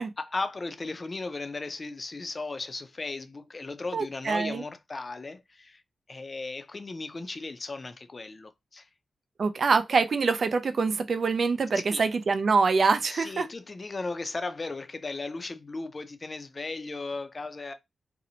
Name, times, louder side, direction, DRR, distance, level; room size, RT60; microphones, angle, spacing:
voice 1, 0.2-5.8 6.1-8.9 11.7-12.1 13.1-17.7, left 3 dB, 45° left, 0.4 m, -36 dB
voice 2, 3.9-4.6 9.4-13.5, right 4 dB, 65° right, 0.3 m, -25 dB
2.7 x 2.0 x 2.7 m
cardioid pair, 55°, 0 cm